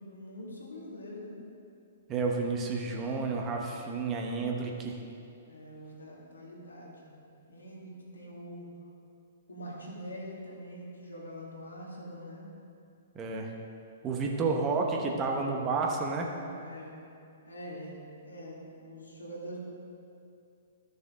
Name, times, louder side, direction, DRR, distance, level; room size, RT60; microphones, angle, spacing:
voice 1, 0.0-1.4 5.5-8.7 9.5-12.5 16.6-17.0 17.4-19.6, equal, 75° left, -3 dB, 2.1 m, -44 dB
voice 2, 2.1-5.0 13.1-13.5 14.0-16.3, right 4 dB, 25° right, 1 dB, 1.0 m, -30 dB
13.0 x 6.6 x 3.7 m, 2.5 s
figure-of-eight pair, 115°, 0 cm